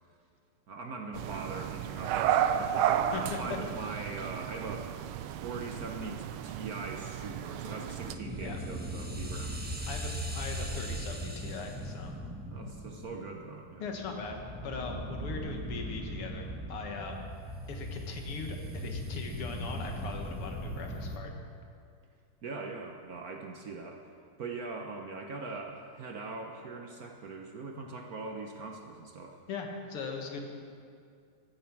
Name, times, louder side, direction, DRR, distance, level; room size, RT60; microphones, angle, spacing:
voice 1, 0.7-10.0 12.5-13.9 22.4-24.0 24.4-29.4, right 3 dB, 55° right, 2 dB, 1.1 m, -41 dB
sound 1, 1.1-8.1, right 10 dB, 80° right, 1.4 m, -32 dB
voice 2, 3.1-3.6 8.4-8.6 9.9-12.1 13.8-14.4 14.6-17.3 17.7-21.3 29.5-30.5, left 4 dB, 85° left, 2 dB, 2.4 m, -40 dB
sound 2, 8.0-21.2, equal, 5° right, 0.9 m, -39 dB
15.0 x 11.0 x 6.0 m, 2.2 s
omnidirectional pair, 2.4 m